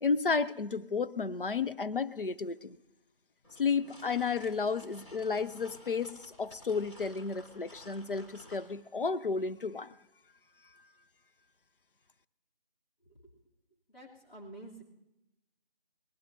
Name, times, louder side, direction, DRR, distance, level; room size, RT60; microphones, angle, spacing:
voice 1, 0.0-2.8 3.6-9.9, left 5 dB, 65° left, 13 dB, 0.7 m, -32 dB
sound 1, 3.4-8.7, left 1 dB, 30° left, 3.4 m, -54 dB
voice 2, 13.0-13.4 13.9-14.8, right 2 dB, 85° left, -3 dB, 3.0 m, -50 dB
23.5 x 19.0 x 2.7 m, 0.93 s
figure-of-eight pair, 165°, 29 cm